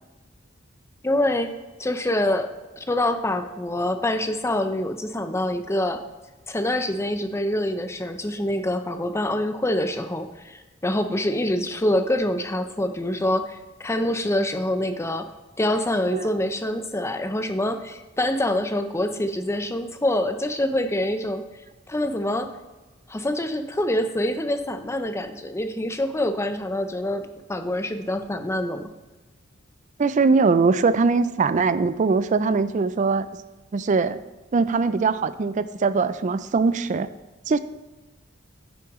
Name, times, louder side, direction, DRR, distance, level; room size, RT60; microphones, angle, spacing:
voice 1, 1.0-1.5 1.8-6.0 6.5-15.3 15.6-21.4 21.9-22.5 23.1-27.2 27.5-28.9, left 1 dB, 15° left, 8 dB, 0.5 m, -25 dB
voice 2, 30.0-33.3 33.7-34.2 34.5-37.1 37.5-37.6, right 4 dB, 40° right, 14 dB, 0.4 m, -21 dB
9.5 x 7.0 x 3.1 m, 1.2 s
head